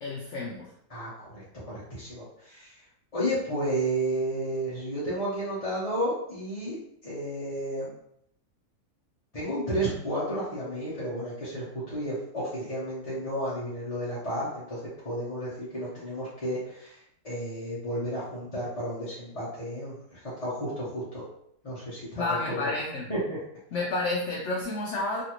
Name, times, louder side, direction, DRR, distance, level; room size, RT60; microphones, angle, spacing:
voice 1, 0.0-0.7 22.2-23.1 23.7-25.2, left 2 dB, 65° left, -2 dB, 0.8 m, -30 dB
voice 2, 0.9-2.8 3.1-7.9 9.3-14.8 15.0-21.2 21.6-22.6 23.1-23.2, right 1 dB, 30° left, -10 dB, 0.8 m, -32 dB
3.1 x 2.6 x 2.9 m, 0.72 s
omnidirectional pair, 1.6 m